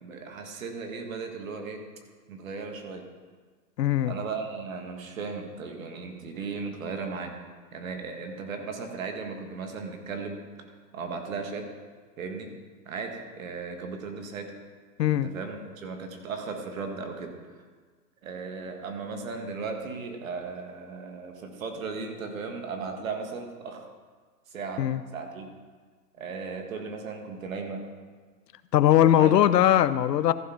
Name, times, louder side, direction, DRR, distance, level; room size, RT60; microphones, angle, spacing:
voice 1, 0.0-1.8 2.3-3.1 4.0-7.3 7.7-10.4 10.9-11.7 12.2-12.5 12.8-14.5 15.1-17.6 18.2-23.9 24.5-24.9 25.1-25.5 26.2-27.8 29.1-29.5, right 4 dB, 55° right, 4 dB, 1.6 m, -36 dB
voice 2, 3.8-4.1 15.0-15.3 24.8-25.0 28.7-30.3, left 12 dB, 80° left, 15 dB, 0.6 m, -20 dB
14.5 x 4.8 x 5.7 m, 1.5 s
hypercardioid pair, 170°, 49 cm